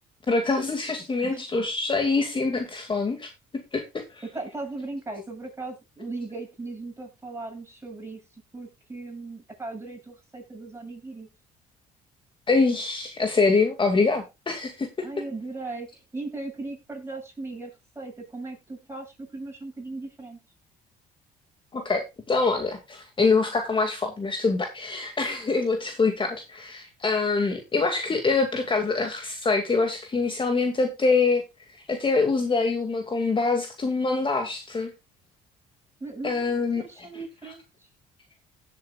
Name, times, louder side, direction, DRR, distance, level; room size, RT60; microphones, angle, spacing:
voice 1, 0.3-3.8 12.5-15.1 21.7-31.4 31.9-34.9 36.2-37.1, left 3 dB, 30° left, 2.3 m, -25 dB
voice 2, 1.2-1.7 4.3-8.2 8.5-11.3 15.0-20.4 36.0-37.9, right 3 dB, 15° right, 7.6 m, -38 dB
16.5 x 8.0 x 2.4 m
supercardioid pair, 75°, 17 cm